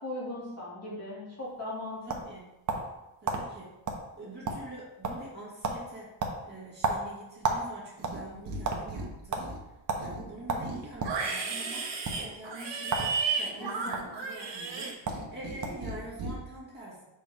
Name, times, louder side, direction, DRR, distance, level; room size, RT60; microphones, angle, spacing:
voice 1, 0.0-2.0 13.6-13.9, left 1 dB, 30° left, -7 dB, 2.3 m, -38 dB
sound 1, 1.5-3.0 3.3-3.4 3.9-4.0 4.3-4.8 5.0-5.3 5.6-5.8 6.2-7.7 8.0-8.8 9.3-9.5 9.9-10.0 10.5-11.2 11.9-12.1 12.9-13.1 13.4-14.0 14.7-14.8 15.1-15.3 15.6-15.9, right 4 dB, 40° right, 0.9 m, -31 dB
voice 2, 2.1-2.5 3.2-3.7 4.1-6.1 6.4-9.5 9.9-11.9 12.2-17.1, right 1 dB, 20° right, -8 dB, 2.1 m, -45 dB
Livestock farm animals working animals, 8.0-8.6 8.9-9.6 10.0-15.6 15.8-16.3, right 4 dB, 55° right, 1.2 m, -34 dB
6.6 x 4.6 x 3.5 m, 0.95 s
wide cardioid pair, 145°, 50 cm